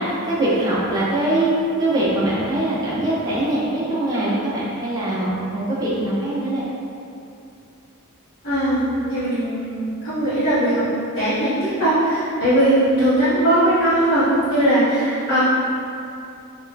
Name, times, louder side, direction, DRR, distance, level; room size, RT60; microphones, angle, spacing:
voice 1, 0.0-6.7, right 1 dB, 15° right, -8 dB, 0.4 m, -22 dB
voice 2, 8.4-10.8 11.1-15.4, right 1 dB, 75° left, -17 dB, 1.4 m, -19 dB
3.0 x 2.3 x 2.2 m, 2.6 s
head